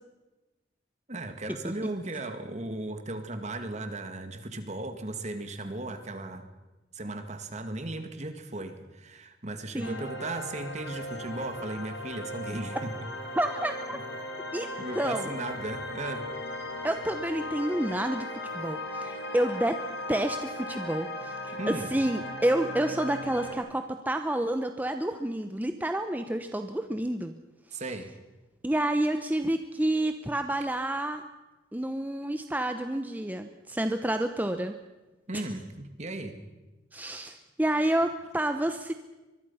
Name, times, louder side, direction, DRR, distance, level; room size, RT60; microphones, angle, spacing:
voice 1, 1.1-6.5 6.9-12.9 13.9-14.0 14.8-16.3 21.5-21.9 27.7-28.1 35.3-36.3, right 2 dB, 40° right, 7 dB, 2.2 m, -36 dB
sound 1, 9.8-23.6, left 1 dB, 85° left, 4.1 m, -37 dB
voice 2, 13.4-14.0 14.5-15.3 16.8-18.3 18.5-19.8 20.1-27.3 27.7-27.8 28.6-31.2 31.7-34.7 35.3-35.4 36.9-38.9, right 1 dB, 10° right, 7 dB, 0.9 m, -29 dB
24.5 x 21.5 x 5.7 m, 1.1 s
head